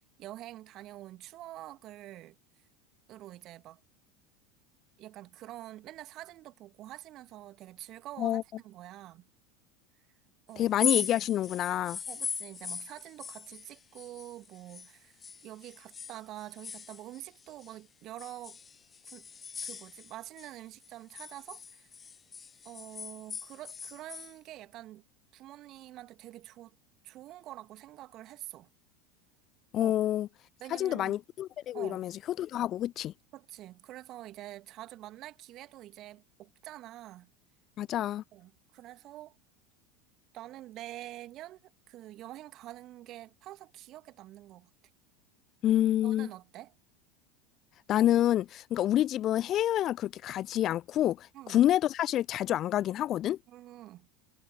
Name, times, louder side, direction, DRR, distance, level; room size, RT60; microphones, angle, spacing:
voice 1, 0.2-2.4 3.1-3.8 5.0-9.3 10.5-10.8 12.1-18.6 19.1-19.3 19.6-21.9 22.7-25.0 25.3-26.8 27.0-28.7 29.8-29.9 30.6-31.2 31.7-32.1 33.3-37.3 38.3-39.4 40.3-44.7 46.0-46.7 51.3-51.6 53.5-54.1, right 15 dB, 40° right, 1.8 m, -46 dB
voice 2, 10.6-12.0 29.7-30.3 30.7-32.1 32.4-33.1 37.8-38.2 45.6-46.3 47.9-53.4, left 12 dB, 40° left, 0.4 m, -28 dB
sound 1, 10.6-14.9 15.2-17.7 18.2-20.5 20.8-24.3, left 6 dB, 25° left, 1.2 m, -39 dB
figure-of-eight pair, 75°, 0 cm